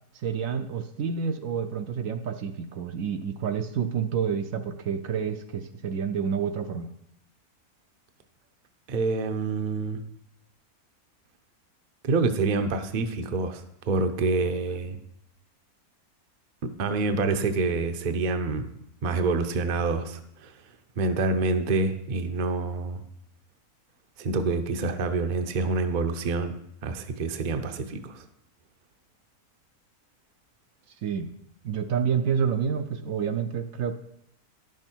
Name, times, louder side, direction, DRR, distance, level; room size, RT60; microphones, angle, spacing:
voice 1, 0.1-6.9 31.0-31.3 31.6-33.9, right 7 dB, 70° right, 8 dB, 0.9 m, -29 dB
voice 2, 8.9-10.0 12.0-15.0 16.6-18.7 19.0-20.5 21.0-23.0 24.2-26.5 26.8-28.2, right 3 dB, 50° right, 7 dB, 0.6 m, -27 dB
10.5 x 6.2 x 4.4 m, 0.77 s
omnidirectional pair, 1.6 m